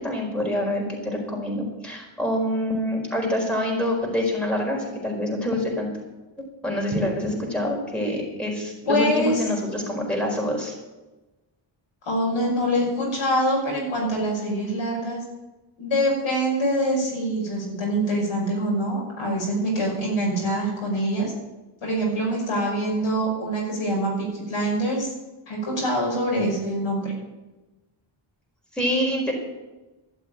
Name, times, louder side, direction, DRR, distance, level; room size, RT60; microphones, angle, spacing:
voice 1, 0.0-5.9 6.6-10.7 28.7-29.3, left 1 dB, ahead, -1 dB, 4.5 m, -26 dB
voice 2, 8.9-9.4 12.0-15.2 15.8-21.3 21.8-25.1 25.5-27.1, equal, 75° left, -2 dB, 5.8 m, -24 dB
13.0 x 7.3 x 8.9 m, 1.1 s
cardioid pair, 75°, 50 cm